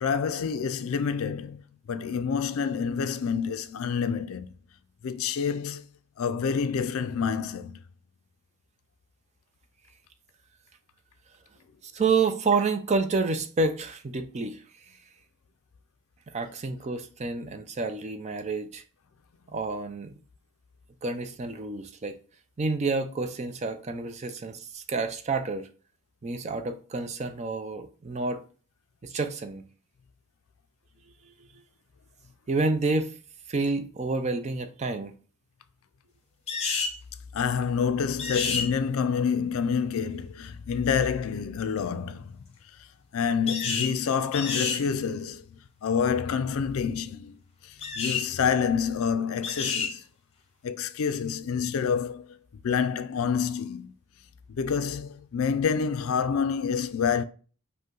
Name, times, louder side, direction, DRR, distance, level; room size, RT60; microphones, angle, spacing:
voice 1, 0.0-4.5 5.0-5.9 6.2-7.8 37.3-42.4 43.1-45.4 45.8-50.0 50.6-52.3 52.6-53.9 54.5-57.2, left 6 dB, 70° left, 0.4 m, -28 dB
voice 2, 11.8-14.6 16.3-18.8 19.5-20.2 21.0-22.2 22.6-25.7 26.2-28.4 29.0-29.6 32.5-33.1 33.5-35.1, right 3 dB, 30° right, 0.4 m, -29 dB
sound 1, 36.5-37.0 38.2-38.7 43.5-43.9 44.3-44.8 47.8-48.3 49.4-49.9, left 5 dB, 30° left, 0.8 m, -29 dB
5.3 x 2.2 x 3.7 m
head